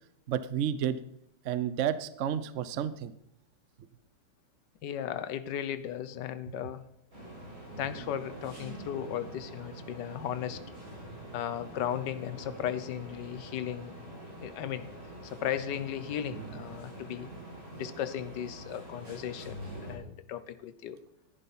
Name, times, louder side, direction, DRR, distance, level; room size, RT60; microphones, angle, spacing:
voice 1, 0.3-1.0 1.4-3.1 16.3-16.5, right 9 dB, 65° right, 14 dB, 0.7 m, -31 dB
voice 2, 4.8-6.8 7.8-10.6 11.3-13.9 14.4-14.9 15.2-17.3 17.7-21.0, left 10 dB, 70° left, 13 dB, 1.4 m, -36 dB
sound 1, 7.1-19.9, right 1 dB, 50° right, 7.0 m, -45 dB
14.5 x 10.5 x 4.2 m, 0.75 s
omnidirectional pair, 2.0 m